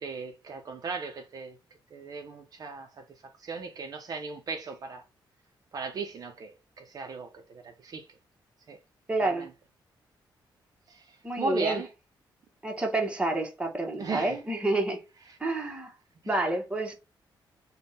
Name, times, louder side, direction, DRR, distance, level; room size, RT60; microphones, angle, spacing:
voice 1, 0.0-1.6 1.9-2.9 3.2-5.0 5.7-8.1 8.7-8.8 9.2-9.5 10.9-11.9 14.0-14.4 16.2-16.3, right 4 dB, 50° right, 0.5 m, -37 dB
voice 2, 9.1-9.5 11.2-11.8 12.6-15.0 15.4-15.9 16.3-16.9, right 2 dB, 15° right, 1.0 m, -29 dB
3.4 x 2.2 x 4.0 m
cardioid pair, 105°, 8 cm